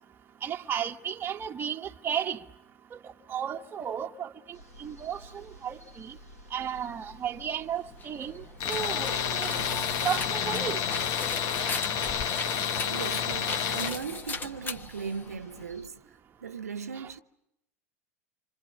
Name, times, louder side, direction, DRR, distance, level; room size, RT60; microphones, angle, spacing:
voice 1, 0.4-2.4 2.9-4.3 4.8-6.2 6.5-9.6 10.0-10.8 16.9-17.1, right 9 dB, 25° right, 1.3 m, -34 dB
sound 1, 4.5-15.9, right 1 dB, 75° left, 4.3 m, -49 dB
sound 2, 7.9-15.8, left 4 dB, 20° left, 1.4 m, -39 dB
Tools, 8.6-14.0, left 8 dB, 40° left, 1.5 m, -30 dB
voice 2, 12.7-16.0 16.4-17.2, right 6 dB, 70° right, 1.2 m, -38 dB
28.5 x 27.0 x 7.2 m
figure-of-eight pair, 85°, 8 cm